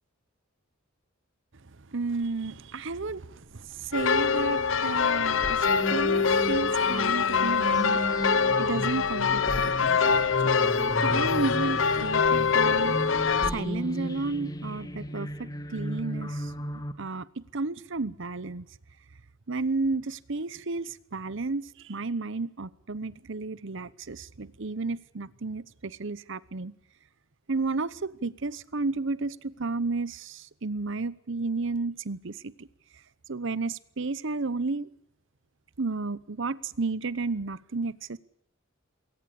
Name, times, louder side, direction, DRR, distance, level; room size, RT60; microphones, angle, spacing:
voice 1, 1.9-8.2 8.6-10.5 11.0-13.0 13.5-16.5 17.0-17.3 17.5-18.6 19.5-26.7 27.5-32.7 33.3-34.9 35.8-38.2, right 3 dB, 60° right, 0.9 m, -32 dB
sound 1, 2.4-14.9, equal, ahead, 3.8 m, -46 dB
sound 2, 3.9-13.5, left 5 dB, 60° left, 0.9 m, -24 dB
sound 3, 5.6-16.9, equal, 15° left, 1.7 m, -35 dB
22.0 x 18.5 x 8.6 m
head